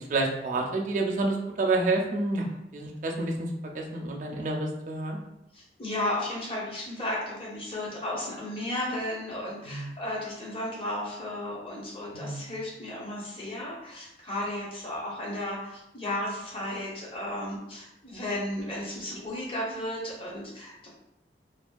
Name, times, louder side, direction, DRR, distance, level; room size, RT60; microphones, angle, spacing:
voice 1, 0.1-2.5 2.7-3.5 3.7-5.2 9.6-9.9 12.1-12.5, right 2 dB, 45° right, 0 dB, 0.4 m, -29 dB
voice 2, 5.5-20.9, left 1 dB, 30° left, -4 dB, 0.7 m, -34 dB
2.5 x 2.3 x 2.2 m, 0.83 s
head